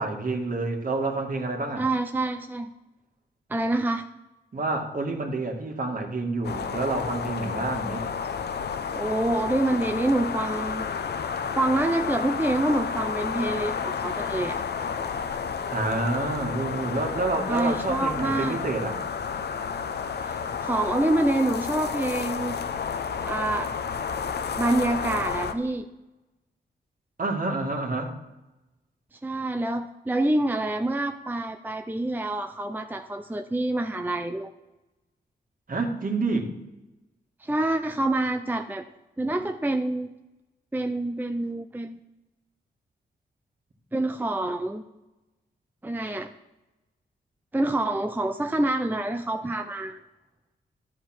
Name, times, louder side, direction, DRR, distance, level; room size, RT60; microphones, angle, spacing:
voice 1, 0.0-1.8 4.5-8.0 15.7-19.0 27.2-28.1 35.7-36.5, right 3 dB, 50° right, 3 dB, 2.2 m, -28 dB
voice 2, 1.8-2.7 3.5-4.1 9.0-10.9 11.6-14.6 17.5-18.6 20.2-22.6 23.3-23.7 24.5-25.9 29.1-34.5 37.4-38.8 39.2-40.1 40.7-42.0 43.9-44.8 45.8-46.3 47.5-50.0, right 2 dB, 10° right, 7 dB, 0.6 m, -27 dB
sound 1, 6.4-25.5, left 6 dB, 65° left, 0.9 m, -31 dB
12.0 x 7.9 x 6.1 m, 1.0 s
cardioid pair, 70°, 18 cm